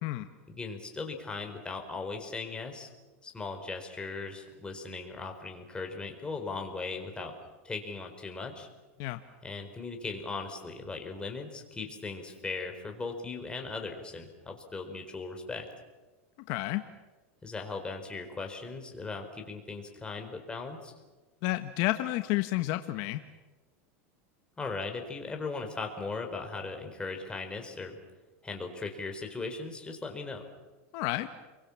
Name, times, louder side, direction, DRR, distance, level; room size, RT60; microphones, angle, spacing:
voice 1, 0.5-2.9 3.2-7.3 7.6-8.7 9.4-15.7 17.4-20.9 24.6-28.0 28.4-30.4, left 3 dB, 15° left, 4 dB, 4.4 m, -38 dB
voice 2, 16.5-16.8 21.4-23.2 30.9-31.3, left 17 dB, 55° left, 8 dB, 1.3 m, -30 dB
29.5 x 23.5 x 7.3 m, 1.2 s
supercardioid pair, 125°, 7 cm